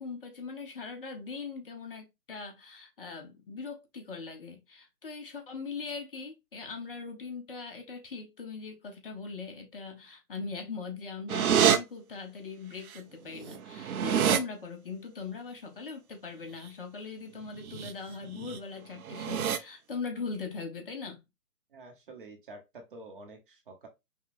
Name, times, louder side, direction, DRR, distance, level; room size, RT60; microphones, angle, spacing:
voice 1, 0.0-21.2, left 4 dB, 35° left, 0.7 m, -40 dB
sound 1, 11.3-11.8 13.0-13.1 13.3-14.4 17.6-17.9 18.3-18.6 19.0-19.6, right 8 dB, 65° right, 0.6 m, -26 dB
voice 2, 21.7-23.9, right 2 dB, 35° right, 0.8 m, -48 dB
5.4 x 2.1 x 2.5 m
hypercardioid pair, 155°, 48 cm